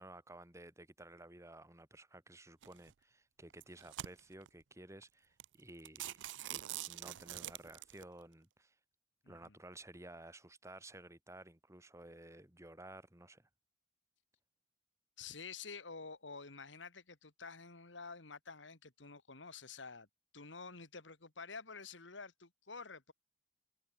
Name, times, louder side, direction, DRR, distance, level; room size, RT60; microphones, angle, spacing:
voice 1, 0.0-8.7 9.3-13.5, right 1 dB, 15° right, 2.9 m, -54 dB
sound 1, 2.6-2.9 3.5-4.5 5.0-5.1 5.4-5.5 5.8-8.0, right 14 dB, 80° right, 0.4 m, -45 dB
voice 2, 9.2-9.6 15.2-20.1 20.3-23.1, left 4 dB, 85° left, 2.5 m, -49 dB
head